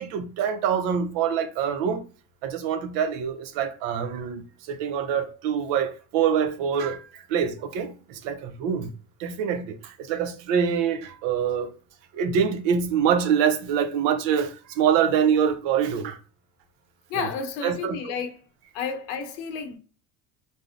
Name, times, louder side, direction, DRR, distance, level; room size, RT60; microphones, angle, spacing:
voice 1, 0.0-2.0 2.4-8.9 9.2-11.7 12.1-16.2 17.2-17.3 17.6-18.0, right 7 dB, 75° right, 0.6 m, -25 dB
voice 2, 17.1-18.4 18.7-19.8, left 6 dB, 80° left, 0.7 m, -31 dB
2.6 x 2.0 x 2.4 m
supercardioid pair, 90°, 44 cm